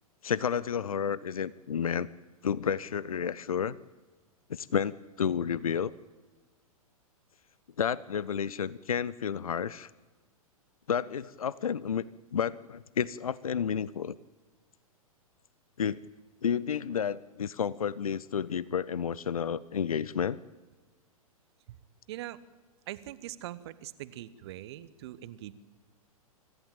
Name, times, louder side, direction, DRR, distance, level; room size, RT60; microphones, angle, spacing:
voice 1, 0.2-2.1 2.4-3.8 4.5-5.9 7.8-9.9 10.9-12.0 12.3-14.2 15.8-16.0 16.4-20.4, left 7 dB, 70° left, 21 dB, 0.6 m, -31 dB
voice 2, 22.9-25.5, right 14 dB, 45° right, 16 dB, 1.2 m, -42 dB
25.0 x 14.5 x 8.9 m, 1.3 s
figure-of-eight pair, 105°, 19 cm